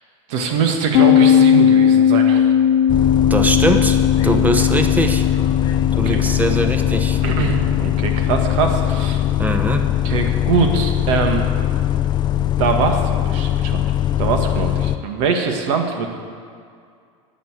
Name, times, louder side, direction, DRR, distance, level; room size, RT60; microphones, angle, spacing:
voice 1, 0.3-2.5 4.3-4.4 6.1-6.2 7.2-9.2 10.0-11.4 12.4-13.8 14.2-16.1, right 5 dB, 65° right, 4 dB, 1.9 m, -22 dB
sound 1, 0.9-10.4, left 9 dB, 50° left, 0.8 m, -18 dB
Bus, 2.9-15.0, left 11 dB, 25° left, 0.4 m, -20 dB
voice 2, 3.3-4.0 4.2-5.2 5.7-7.2 9.4-9.9, right 1 dB, 10° right, 6 dB, 0.9 m, -21 dB
11.0 x 8.2 x 8.1 m, 2.2 s
supercardioid pair, 135°, 17 cm